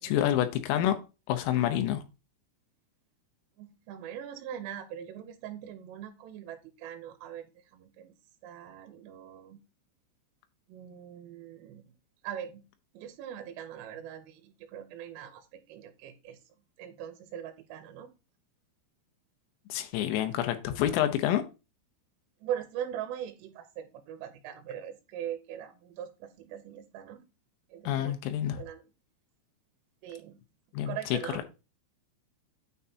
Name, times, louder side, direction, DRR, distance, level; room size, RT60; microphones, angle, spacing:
voice 1, 0.0-1.0 1.3-2.0 19.7-21.4 27.9-28.6 30.7-31.2, left 11 dB, 85° left, 8 dB, 3.5 m, -28 dB
voice 2, 3.6-8.1 8.4-9.6 10.7-11.9 12.2-12.6 12.9-16.4 16.8-18.1 22.4-27.3 27.7-28.1 28.5-28.8 30.0-30.4 30.8-31.4, right 10 dB, 80° right, 7 dB, 3.3 m, -41 dB
9.1 x 5.4 x 2.8 m, 0.29 s
omnidirectional pair, 5.9 m